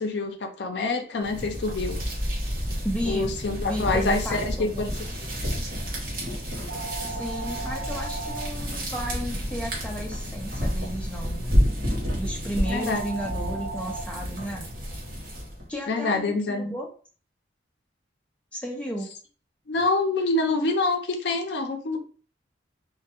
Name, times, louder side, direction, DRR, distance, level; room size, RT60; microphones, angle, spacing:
voice 1, 0.0-2.0 3.0-4.9 12.7-13.0 15.9-16.7 19.7-22.0, left 3 dB, 65° left, 5 dB, 0.4 m, -26 dB
sound 1, 1.2-15.7, equal, 55° right, 0.8 m, -30 dB
voice 2, 2.8-3.3 3.7-4.9 7.0-11.5 12.2-14.7 15.7-16.9 18.5-19.1, equal, 5° left, 0 dB, 0.3 m, -33 dB
sound 2, 3.7-14.0, right 3 dB, 70° right, 0.4 m, -40 dB
2.2 x 2.1 x 2.8 m, 0.39 s
head